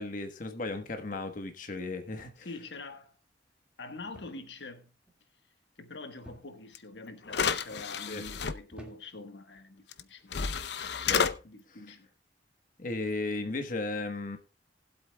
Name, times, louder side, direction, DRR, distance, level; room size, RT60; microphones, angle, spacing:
voice 1, 0.0-2.5 8.1-8.2 11.1-11.3 12.8-14.4, left 2 dB, 50° left, 1.2 m, -35 dB
sound 1, 2.2-2.7 4.1-4.5 4.8-5.2 6.2-6.8 7.5-7.9 8.7-9.4 10.3-10.6, equal, 5° right, 1.9 m, -52 dB
voice 2, 2.4-3.1 3.8-4.9 5.8-10.4 11.4-12.1, left 3 dB, 90° left, 1.3 m, -45 dB
sound 2, 6.7-6.8 7.3-8.5 9.9-10.0 10.3-11.3, left 6 dB, 70° left, 0.6 m, -30 dB
19.0 x 8.1 x 2.2 m
head